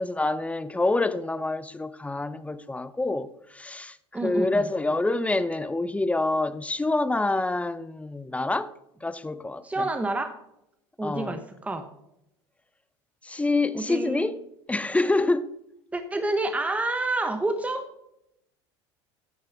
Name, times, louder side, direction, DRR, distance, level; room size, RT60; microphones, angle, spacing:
voice 1, 0.0-4.0 4.2-8.7 9.0-9.6 11.0-11.4 13.2-14.4 14.7-15.5, left 2 dB, 10° left, 0.6 m, -26 dB
voice 2, 4.1-4.7 9.6-10.3 11.0-11.9 13.7-14.3 15.9-17.9, right 2 dB, 10° right, 1.0 m, -28 dB
9.7 x 6.6 x 5.8 m
hypercardioid pair, 90°, 14 cm